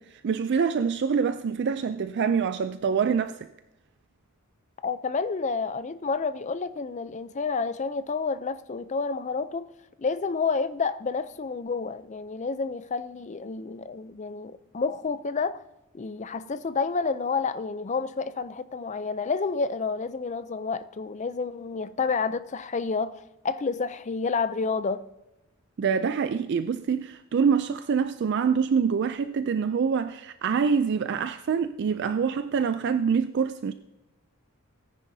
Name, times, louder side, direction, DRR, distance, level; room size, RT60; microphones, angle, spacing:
voice 1, 0.0-3.5 25.8-33.7, right 6 dB, 50° right, 0.3 m, -25 dB
voice 2, 4.8-9.7 10.0-15.6 15.9-25.0, left 4 dB, 30° left, 0.4 m, -29 dB
18.0 x 9.9 x 2.7 m
head